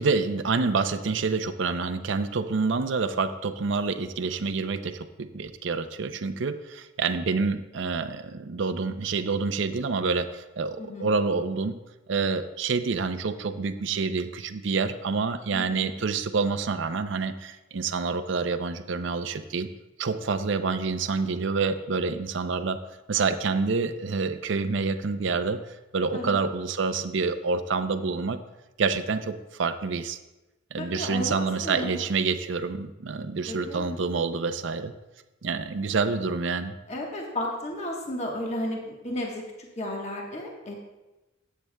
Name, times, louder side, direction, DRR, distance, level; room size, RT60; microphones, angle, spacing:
voice 1, 0.0-11.8 12.1-19.7 20.0-22.8 23.1-25.6 25.9-28.4 28.8-30.2 30.7-34.9 35.4-36.8, right 4 dB, 65° right, 10 dB, 0.5 m, -27 dB
voice 2, 10.8-11.1 15.5-15.9 26.1-26.4 30.8-32.0 33.5-34.0 36.9-39.4 39.8-40.8, left 1 dB, 35° left, -1 dB, 1.2 m, -33 dB
13.5 x 8.3 x 2.2 m, 1.0 s
head